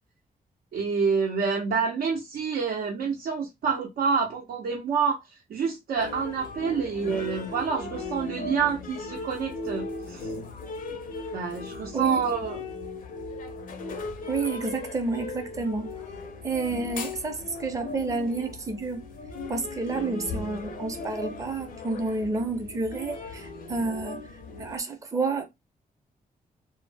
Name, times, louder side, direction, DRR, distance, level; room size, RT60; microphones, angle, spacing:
voice 1, 0.7-5.2 5.5-10.3 11.3-12.6, right 5 dB, 75° right, 0.6 m, -27 dB
sound 1, 6.0-24.8, left 3 dB, 60° left, 0.5 m, -37 dB
voice 2, 14.3-15.9 16.4-19.0 19.5-24.2 24.6-25.5, right 3 dB, 20° right, 0.5 m, -30 dB
2.0 x 2.0 x 3.2 m
cardioid pair, 90°, 16 cm